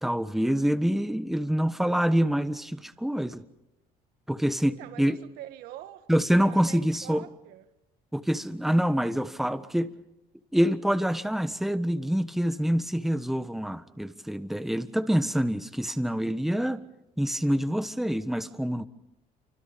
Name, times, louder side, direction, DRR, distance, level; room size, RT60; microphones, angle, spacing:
voice 1, 0.0-3.4 4.3-4.7 5.0-5.2 6.1-7.2 8.1-9.9 10.5-16.8 17.2-18.9, equal, ahead, 1.4 m, -26 dB
voice 2, 4.7-6.1 6.4-7.7, right 13 dB, 90° right, 2.0 m, -44 dB
29.0 x 25.0 x 5.3 m
cardioid pair, 105°, 15 cm